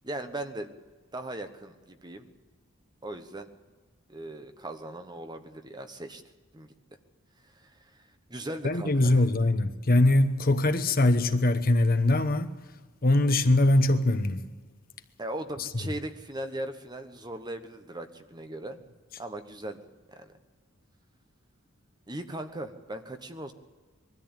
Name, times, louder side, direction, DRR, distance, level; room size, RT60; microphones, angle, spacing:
voice 1, 0.0-0.7 1.1-2.3 3.0-3.5 4.1-6.2 6.5-6.7 7.6-8.0 8.3-9.2 15.2-18.8 19.2-19.8 20.2-20.3 22.1-23.5, right 1 dB, 20° right, 1.1 m, -38 dB
voice 2, 8.6-12.5 13.0-14.4, left 2 dB, 45° left, 1.1 m, -22 dB
22.0 x 13.5 x 8.9 m
head